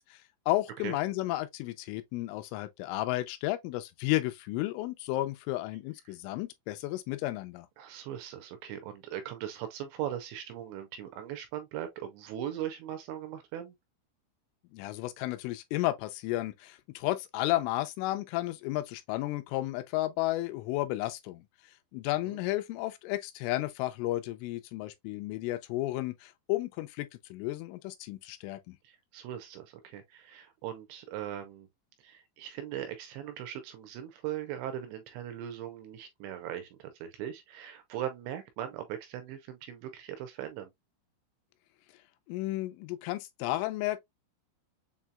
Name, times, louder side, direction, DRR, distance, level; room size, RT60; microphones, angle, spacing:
voice 1, 0.5-7.7 14.7-21.5 21.9-28.8 42.3-44.0, left 17 dB, 90° left, 3.1 m, -33 dB
voice 2, 7.8-13.7 22.2-22.4 28.8-31.7 32.0-40.7, right 11 dB, 80° right, 2.7 m, -39 dB
7.2 x 2.8 x 2.2 m
omnidirectional pair, 5.5 m